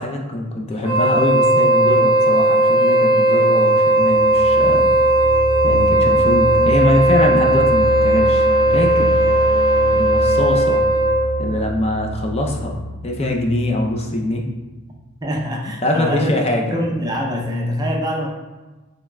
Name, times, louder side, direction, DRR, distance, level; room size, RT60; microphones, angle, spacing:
voice 1, 0.0-4.9 5.6-9.2 9.9-10.8 11.4-12.8 13.0-14.4 15.8-16.8, left 1 dB, 30° left, 1 dB, 0.5 m, -22 dB
Wind instrument woodwind instrument, 0.8-11.4, right 1 dB, 65° left, 1.5 m, -16 dB
sound 1, 3.9-14.6, equal, 80° left, 0.9 m, -27 dB
voice 2, 15.2-16.4 16.7-18.3, equal, 20° right, -1 dB, 0.5 m, -24 dB
4.6 x 3.2 x 2.2 m, 1.2 s
head